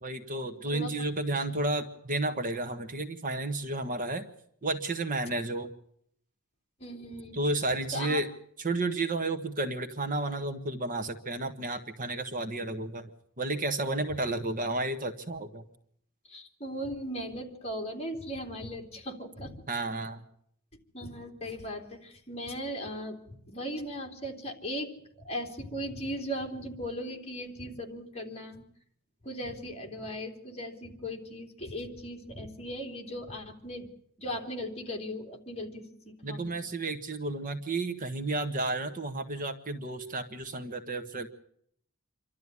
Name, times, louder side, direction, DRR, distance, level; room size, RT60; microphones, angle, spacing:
voice 1, 0.0-4.2 4.6-5.7 7.3-8.3 8.6-13.1 13.4-15.6 19.7-20.2 36.2-41.3, right 2 dB, 40° right, 9 dB, 1.4 m, -32 dB
voice 2, 6.8-7.4 7.9-8.2 16.3-19.6 20.9-28.6 29.2-33.9 34.2-36.6, equal, 30° left, 3 dB, 3.3 m, -38 dB
27.0 x 12.5 x 9.8 m, 0.68 s
head